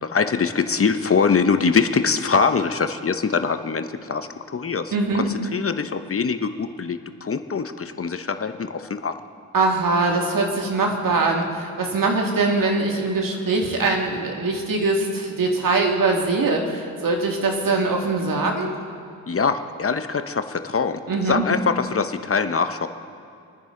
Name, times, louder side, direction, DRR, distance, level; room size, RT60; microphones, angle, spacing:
voice 1, 0.0-9.2 19.3-21.0 21.3-22.9, left 5 dB, 40° left, 9 dB, 0.9 m, -23 dB
voice 2, 4.9-5.3 9.5-18.7 21.1-21.4, right 3 dB, 65° right, 1 dB, 2.2 m, -22 dB
26.5 x 10.0 x 3.8 m, 2.4 s
cardioid pair, 55°, 35 cm